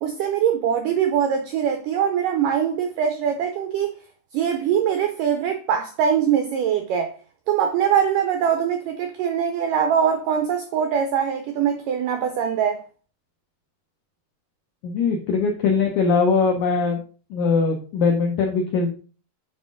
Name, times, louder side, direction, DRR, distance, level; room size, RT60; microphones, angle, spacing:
voice 1, 0.0-3.9 4.3-7.1 7.5-12.8, right 8 dB, 90° right, 1.9 m, -22 dB
voice 2, 14.8-17.0 17.3-18.9, left 4 dB, 80° left, 1.7 m, -21 dB
7.3 x 5.7 x 3.7 m
omnidirectional pair, 4.7 m